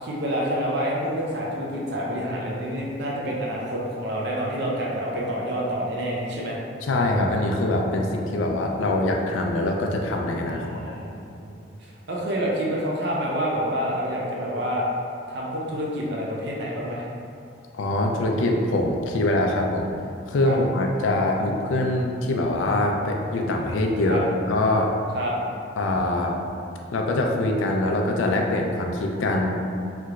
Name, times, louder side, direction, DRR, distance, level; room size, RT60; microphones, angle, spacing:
voice 1, 0.0-6.6 10.5-11.5 12.1-14.9 15.3-17.1 20.4-20.6 24.0-24.2 25.1-25.3, equal, 60° right, -4 dB, 0.5 m, -28 dB
voice 2, 6.8-10.8 17.7-19.9 20.3-24.2 24.5-24.9 25.8-26.3 26.9-29.5, left 1 dB, 80° left, 1 dB, 0.4 m, -23 dB
3.2 x 2.9 x 2.3 m, 2.5 s
head